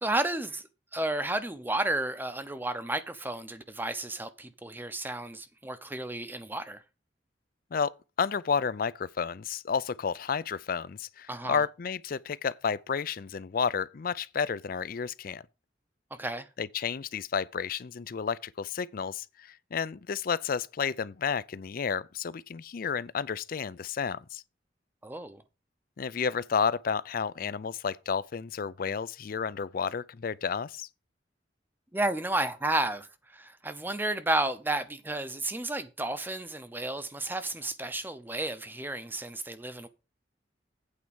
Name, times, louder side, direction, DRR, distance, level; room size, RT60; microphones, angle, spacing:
voice 1, 0.0-0.6 0.9-6.8 11.3-11.6 16.2-16.5 25.0-25.4 31.9-33.1 33.3-39.9, right 2 dB, 10° right, 0.7 m, -32 dB
voice 2, 7.7-15.4 16.6-24.4 26.0-30.9, left 6 dB, 50° left, 0.4 m, -31 dB
8.6 x 4.5 x 7.1 m
head